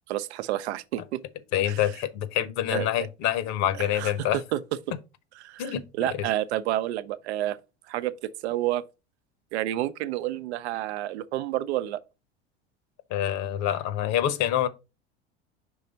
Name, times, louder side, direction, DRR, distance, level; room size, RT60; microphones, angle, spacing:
voice 1, 0.1-1.2 1.7-1.8 2.7-3.1 3.8-4.6 5.4-7.6 7.9-8.8 9.5-12.0, right 14 dB, 80° right, 0.6 m, -30 dB
voice 2, 1.5-4.4 5.6-5.8 6.1-6.2 13.1-14.7, left 11 dB, 55° left, 1.0 m, -26 dB
5.5 x 3.3 x 5.2 m
hypercardioid pair, 95°, 33 cm